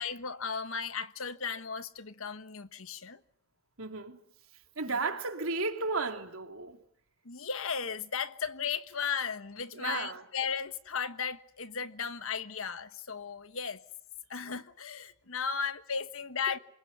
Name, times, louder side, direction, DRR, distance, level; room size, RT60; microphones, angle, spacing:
voice 1, 0.0-3.2 4.9-5.0 7.2-13.8 14.3-16.6, left 6 dB, 70° left, 1.3 m, -35 dB
voice 2, 3.8-4.2 4.8-6.8 9.7-10.2, right 3 dB, 75° right, 3.1 m, -34 dB
27.5 x 19.0 x 9.5 m
head